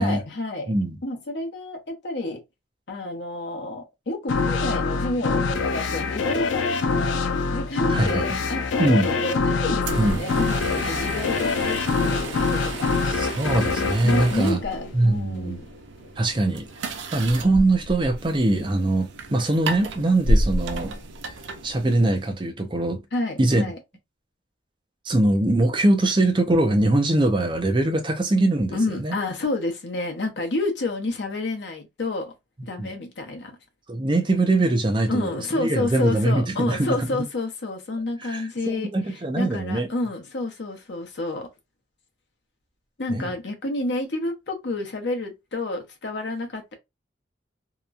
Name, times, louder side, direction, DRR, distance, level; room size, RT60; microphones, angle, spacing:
voice 1, 0.0-0.7 1.0-2.4 2.9-7.2 7.5-12.9 14.0-15.6 23.1-23.8 28.7-32.3 32.6-33.5 35.1-41.5 43.0-46.7, left 2 dB, 70° left, 0.8 m, -29 dB
sound 1, 4.3-15.5, left 4 dB, 85° left, 0.4 m, -25 dB
voice 2, 7.9-8.2 8.8-9.1 9.9-10.2 13.1-14.6 14.9-15.6 16.2-16.7 17.1-21.0 21.6-23.0 23.4-23.7 25.1-29.2 32.8-32.9 33.9-37.2 38.2-39.9 43.1-43.3, right 2 dB, 25° right, 0.5 m, -22 dB
sound 2, 9.8-22.3, right 1 dB, 80° right, 0.5 m, -31 dB
2.8 x 2.2 x 2.4 m
head